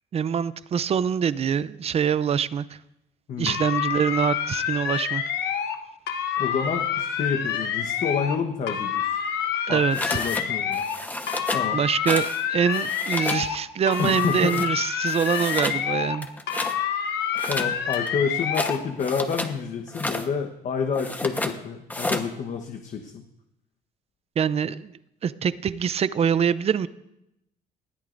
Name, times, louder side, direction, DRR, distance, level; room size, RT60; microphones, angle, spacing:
voice 1, 0.1-2.7 3.4-5.2 9.7-10.2 11.7-16.3 24.4-24.9 25.2-26.9, right 7 dB, 35° right, 16 dB, 0.6 m, -24 dB
sound 1, 3.5-5.8 6.1-8.4 8.7-11.0 11.3-13.6 13.9-16.2 16.5-18.8, left 8 dB, 75° left, 1.1 m, -27 dB
voice 2, 6.4-9.2 9.7-10.8 11.5-11.8 14.0-14.6 17.5-23.2, left 6 dB, 50° left, 3 dB, 1.2 m, -29 dB
sound 2, 9.9-10.5 10.7-11.7 12.1-12.4 12.7-13.5 13.9-14.7 15.1-15.8 16.2-16.8 17.3-19.6 19.9-20.3 20.9-21.6 21.9-22.3, left 1 dB, 10° left, 1.2 m, -31 dB
20.0 x 13.5 x 2.6 m, 0.86 s
cardioid pair, 110°, 17 cm